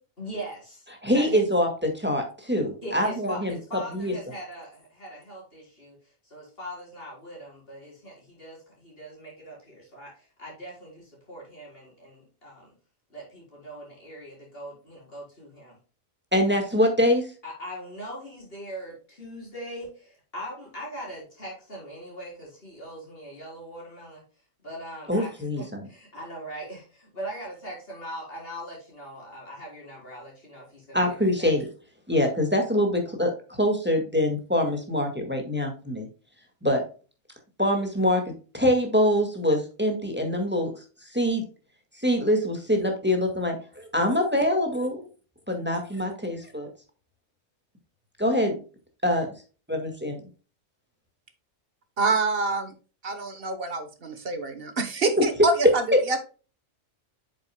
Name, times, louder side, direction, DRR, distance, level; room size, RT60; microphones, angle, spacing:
voice 1, 0.2-0.9 1.1-1.4 2.8-6.0 6.2-12.7 13.1-15.8 17.4-24.2 24.6-31.5, equal, 45° left, -3 dB, 4.2 m, -41 dB
voice 2, 1.0-3.6 3.9-4.1 16.3-17.3 25.1-25.9 30.9-31.7 32.1-36.1 36.6-36.8 37.6-40.7 41.1-41.4 42.0-43.5 43.9-45.0 45.5-46.7 48.2-48.6 49.0-49.3 49.7-50.2 55.2-55.3 55.9-56.0, equal, 10° right, 3 dB, 1.7 m, -24 dB
voice 3, 52.0-52.7 53.0-56.2, right 3 dB, 50° right, 9 dB, 1.2 m, -26 dB
8.7 x 6.9 x 2.2 m, 0.36 s
omnidirectional pair, 1.4 m